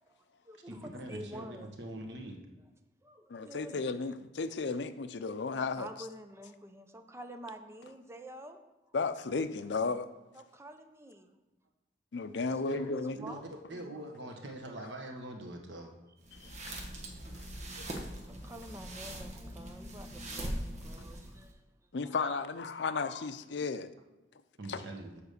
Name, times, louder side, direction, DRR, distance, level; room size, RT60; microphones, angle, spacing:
voice 1, 0.0-1.7 3.0-3.8 5.8-8.6 10.3-11.3 12.5-12.6 12.9-13.9 15.8-15.9 17.5-21.7 22.0-22.2, right 1 dB, 15° right, 6 dB, 0.7 m, -49 dB
voice 2, 0.7-2.4 12.7-12.9 13.2-15.9 24.6-25.2, right 1 dB, 85° right, 2 dB, 1.4 m, -43 dB
voice 3, 3.3-5.9 8.9-10.1 12.1-13.2 16.3-16.9 17.3-17.5 18.0-18.1 21.9-23.9 24.7-24.8, left 4 dB, 80° left, 12 dB, 0.5 m, -34 dB
sound 1, 16.2-21.5, right 1 dB, 40° right, 1.3 m, -41 dB
7.2 x 5.1 x 6.7 m, 1.0 s
head